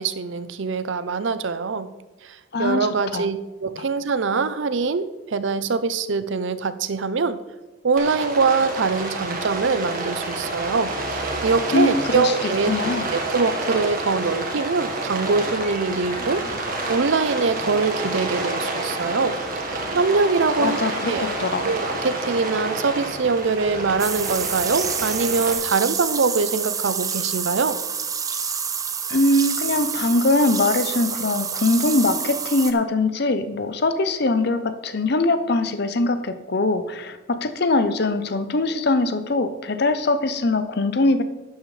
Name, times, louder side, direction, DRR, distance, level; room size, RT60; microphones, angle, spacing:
voice 1, 0.0-1.9 2.2-7.4 7.8-12.7 13.1-16.4 16.9-19.4 19.6-20.8 21.1-21.2 21.6-27.8, right 4 dB, 70° right, 13 dB, 0.6 m, -23 dB
voice 2, 2.5-3.3 11.7-13.1 20.6-21.7 29.1-41.2, left 2 dB, 50° left, 10 dB, 0.7 m, -22 dB
Rain, 8.0-25.5, right 2 dB, 45° right, 1.6 m, -29 dB
sound 1, 24.0-32.7, right 6 dB, 15° right, 0.5 m, -28 dB
11.5 x 10.0 x 3.3 m, 1.1 s
head